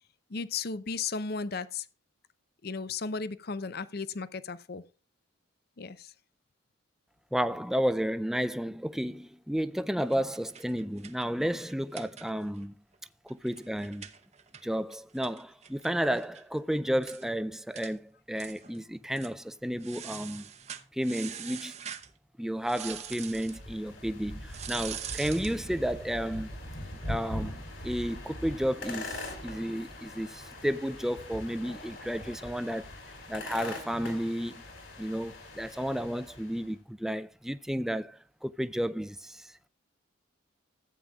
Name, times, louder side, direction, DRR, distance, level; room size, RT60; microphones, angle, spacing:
voice 1, 0.3-1.9 2.6-4.8 5.8-6.1, left 4 dB, 50° left, 0.6 m, -35 dB
voice 2, 7.3-12.7 13.3-14.1 14.6-20.4 20.9-21.8 22.4-26.5 27.0-32.9 33.3-34.6 35.0-39.5, equal, ahead, 0.3 m, -32 dB
sound 1, 10.0-12.6 12.9-13.0 13.3-16.4 16.7-16.8 17.0-17.3 17.8-17.9 18.4-18.8 19.1-19.4 19.8-22.1 22.7-23.6 24.5-25.6, right 9 dB, 35° right, 0.7 m, -43 dB
sound 2, 22.7-36.7, left 1 dB, 65° left, 4.5 m, -42 dB
15.0 x 8.8 x 2.4 m
head